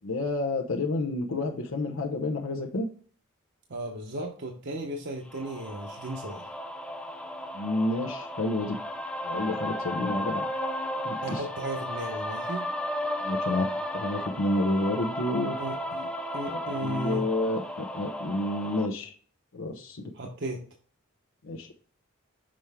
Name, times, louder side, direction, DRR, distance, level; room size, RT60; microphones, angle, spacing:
voice 1, 0.0-2.9 7.5-8.8 9.2-10.4 11.0-11.4 13.2-13.7 13.9-15.6 16.4-19.1 19.5-20.0 21.4-21.7, left 2 dB, 70° left, 2 dB, 0.8 m, -29 dB
voice 2, 3.7-6.4 11.2-12.7 15.6-17.2 20.1-20.6, right 1 dB, 55° right, 1 dB, 0.9 m, -35 dB
sound 1, 5.3-18.9, left 1 dB, 5° left, 0.4 m, -34 dB
6.2 x 4.4 x 3.5 m, 0.42 s
head